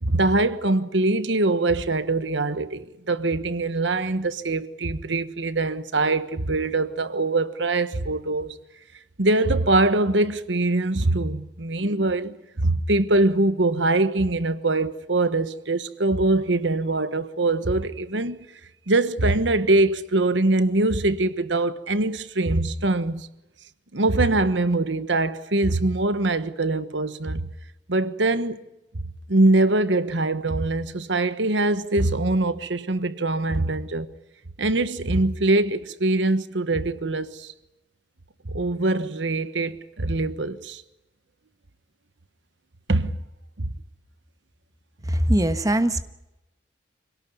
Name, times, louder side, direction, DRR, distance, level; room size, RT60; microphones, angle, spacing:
voice 1, 0.0-8.6 9.2-18.5 18.9-23.3 23.9-27.5 27.9-28.6 29.3-34.1 34.6-37.5 38.4-40.8 42.9-43.2 43.6-43.7, right 2 dB, 80° right, 1.3 m, -23 dB
voice 2, 45.0-46.0, right 1 dB, 20° right, 1.2 m, -21 dB
26.0 x 18.0 x 9.5 m
head